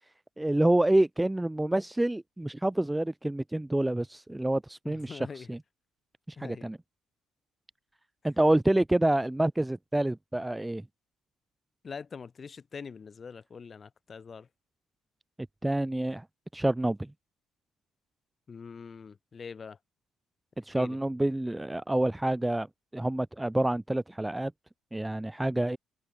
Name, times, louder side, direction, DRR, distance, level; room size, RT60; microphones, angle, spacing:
voice 1, 0.4-5.6 6.3-6.8 8.2-10.8 15.6-16.2 16.5-17.1 20.6-22.7 22.9-24.5 24.9-25.8, right 1 dB, 5° right, 0.3 m, -27 dB
voice 2, 4.8-5.5 6.4-6.7 11.8-14.5 18.5-19.8 20.7-21.0, left 5 dB, 25° left, 2.6 m, -43 dB
cardioid pair, 160°, 0 cm